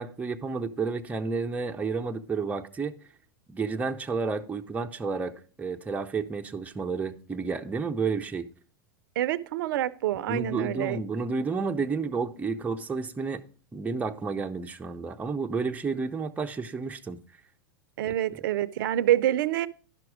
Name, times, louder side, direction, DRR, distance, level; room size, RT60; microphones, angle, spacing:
voice 1, 0.0-3.0 3.5-8.5 10.3-13.4 13.7-17.2 18.0-18.1, right 4 dB, 15° right, 0.7 m, -31 dB
voice 2, 9.2-11.0 18.0-19.7, right 12 dB, 65° right, 0.6 m, -26 dB
11.0 x 6.0 x 4.9 m
hypercardioid pair, 100°, 12 cm